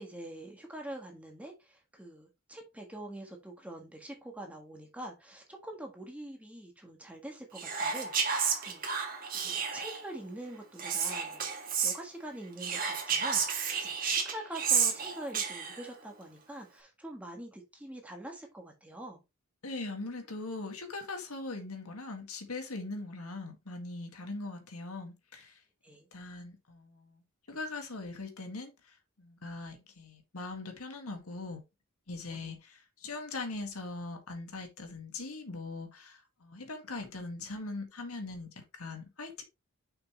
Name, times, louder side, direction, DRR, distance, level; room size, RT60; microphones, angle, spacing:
voice 1, 0.0-8.9 9.3-19.2 25.8-26.1 32.3-32.5, right 1 dB, 5° right, 1.6 m, -45 dB
Whispering, 7.6-10.1 10.8-12.0 12.6-15.9, right 6 dB, 40° right, 1.7 m, -31 dB
voice 2, 19.6-25.6 26.1-27.2 27.5-31.6 32.1-39.4, left 3 dB, 85° left, 1.8 m, -41 dB
6.6 x 5.9 x 3.0 m
head